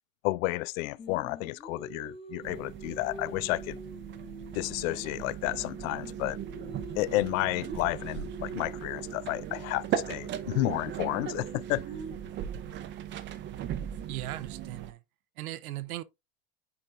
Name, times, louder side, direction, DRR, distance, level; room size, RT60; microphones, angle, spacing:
voice 1, 0.2-3.8 4.5-6.4 7.0-11.8, left 19 dB, 75° left, 0.5 m, -31 dB
Singing, 1.0-5.3 5.6-11.6, left 1 dB, 15° left, 1.0 m, -48 dB
sound 1, 2.4-14.9, right 10 dB, 30° right, 0.5 m, -38 dB
voice 2, 14.1-15.0 15.4-16.0, right 15 dB, 90° right, 0.8 m, -37 dB
9.5 x 4.3 x 2.5 m
supercardioid pair, 130°, 41 cm